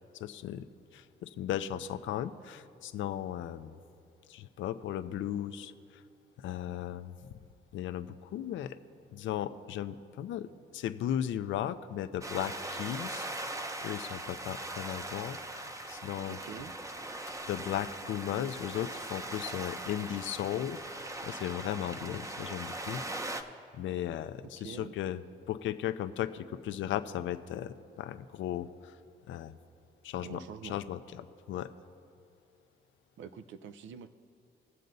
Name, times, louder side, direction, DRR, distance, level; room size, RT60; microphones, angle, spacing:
voice 1, 0.1-0.6 0.9-3.8 4.3-5.7 6.4-7.4 7.7-8.8 9.1-10.5 10.7-13.3 13.8-16.4 17.5-23.3 23.7-25.2 25.5-29.0 29.3-29.5 30.0-31.7, left 11 dB, 75° left, 11 dB, 0.5 m, -36 dB
sound 1, 12.2-23.4, right 2 dB, 15° right, 0.7 m, -40 dB
voice 2, 16.3-16.7 24.6-24.9 30.2-30.8 33.2-34.1, right 7 dB, 75° right, 12 dB, 0.6 m, -45 dB
22.5 x 7.6 x 2.7 m, 2.5 s
cardioid pair, 90°, 20 cm